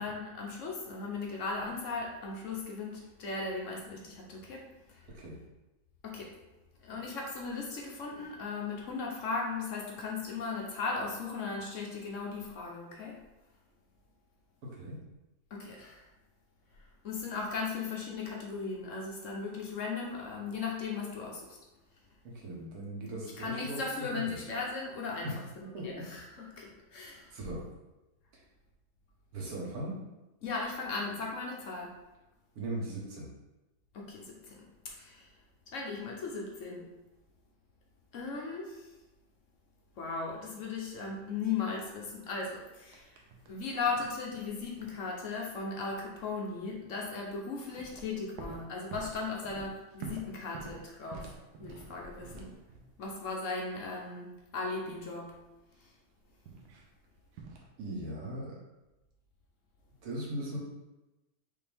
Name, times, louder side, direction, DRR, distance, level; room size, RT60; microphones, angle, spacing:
voice 1, 0.0-4.6 6.0-6.3 6.8-13.2 15.5-16.0 17.0-21.4 23.2-25.3 25.6-27.2 30.4-31.9 33.9-34.2 35.0-35.2 35.7-36.9 38.1-38.7 40.0-43.0 43.5-51.3 51.6-52.5 53.0-54.3 54.5-55.3, left 4 dB, 60° left, -1 dB, 1.0 m, -37 dB
voice 2, 5.1-5.4 14.6-15.0 22.2-23.8 24.1-24.3 25.2-25.4 25.7-26.0 27.3-27.6 29.3-30.0 32.5-33.3 57.8-58.6 60.0-60.6, right 1 dB, 70° right, -3 dB, 1.6 m, -38 dB
sound 1, 42.9-43.6 43.9-45.0 47.6-53.0 56.5-56.9 57.3-57.7, right 3 dB, 90° right, 1.2 m, -47 dB
5.2 x 2.8 x 3.4 m, 1.0 s
omnidirectional pair, 1.6 m